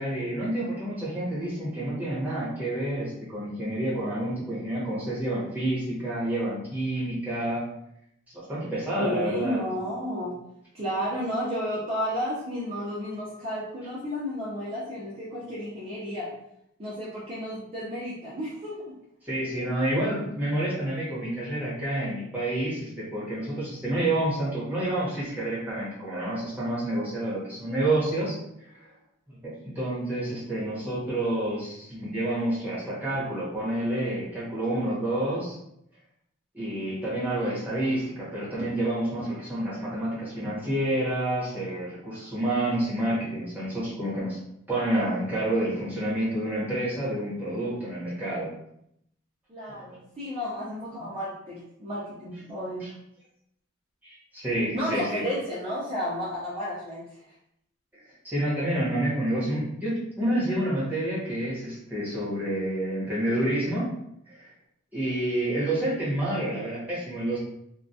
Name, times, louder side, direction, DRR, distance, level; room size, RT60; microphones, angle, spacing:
voice 1, 0.0-7.6 8.3-9.6 19.2-28.9 29.3-35.6 36.5-44.4 44.7-48.5 49.7-49.8 52.8-52.9 54.0-55.2 57.9-63.9 64.3-64.5 64.9-67.4, right 1 dB, 10° right, -8 dB, 0.9 m, -29 dB
voice 2, 9.0-10.3 10.7-16.3 16.8-18.9 49.5-52.8 54.7-57.0, equal, 30° right, -9 dB, 0.5 m, -32 dB
2.2 x 2.1 x 2.6 m, 0.76 s
head